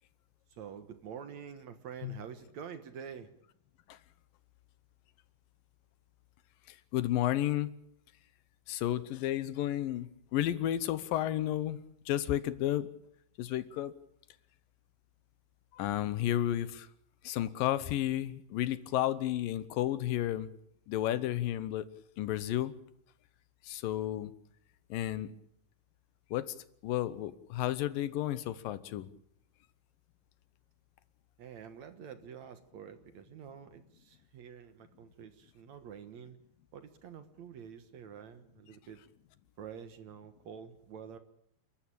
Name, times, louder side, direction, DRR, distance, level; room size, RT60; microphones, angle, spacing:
voice 1, 0.5-3.3 31.4-36.4 36.7-39.0 39.6-41.2, right 7 dB, 60° right, 10 dB, 2.3 m, -47 dB
voice 2, 6.9-7.7 8.7-11.8 12.1-12.9 13.4-13.9 15.7-16.9 17.2-20.5 20.9-21.8 22.2-22.7 23.7-24.3 24.9-25.3 26.3-26.5 26.8-29.1, left 13 dB, 75° left, 15 dB, 2.6 m, -32 dB
30.0 x 13.0 x 8.8 m, 0.72 s
omnidirectional pair, 4.1 m